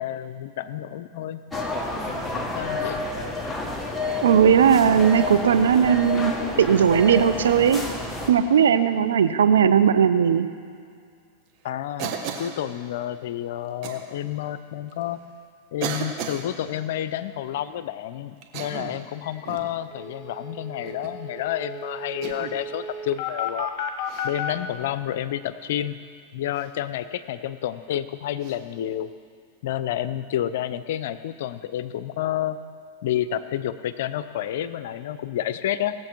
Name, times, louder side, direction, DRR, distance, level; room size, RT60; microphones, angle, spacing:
voice 1, 0.0-1.4 2.1-3.0 11.6-15.2 15.7-23.7 24.2-26.0 26.3-29.1 29.6-32.6 33.0-35.9, left 11 dB, 70° left, 13 dB, 0.6 m, -30 dB
sound 1, 1.5-8.3, left 2 dB, 5° left, 1.5 m, -30 dB
voice 2, 4.2-6.3 6.6-7.8 8.3-10.5, right 8 dB, 85° right, 11 dB, 0.6 m, -18 dB
Cough, 12.0-12.6 13.8-14.0 14.9-15.0 15.8-16.5 18.4-19.0 19.5-19.7 20.8-21.2 22.2-22.6 24.0-24.3 26.5-26.7 28.4-28.6, right 7 dB, 50° right, 1.4 m, -33 dB
sound 2, 19.2-19.3 19.6-19.7 19.9-24.5, left 5 dB, 50° left, 1.6 m, -33 dB
18.5 x 7.6 x 4.6 m, 2.3 s
hypercardioid pair, 115°, 0 cm